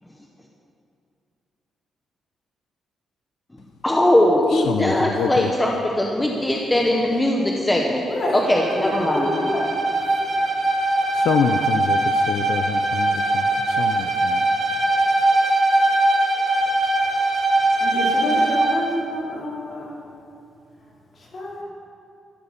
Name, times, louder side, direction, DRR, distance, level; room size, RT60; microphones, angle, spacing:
voice 1, 3.8-8.0 8.5-9.3, left 1 dB, 10° left, -1 dB, 1.0 m, -20 dB
voice 2, 4.5-5.5 11.1-14.4, left 7 dB, 70° left, 6 dB, 0.5 m, -26 dB
voice 3, 8.0-8.4 8.7-9.7 17.8-19.9 20.8-20.9 21.2-21.6, left 1 dB, 35° left, -5 dB, 3.5 m, -28 dB
Bowed string instrument, 8.4-18.9, right 2 dB, 40° right, 1.8 m, -21 dB
13.5 x 8.7 x 7.2 m, 2.5 s
cardioid pair, 160°, 0 cm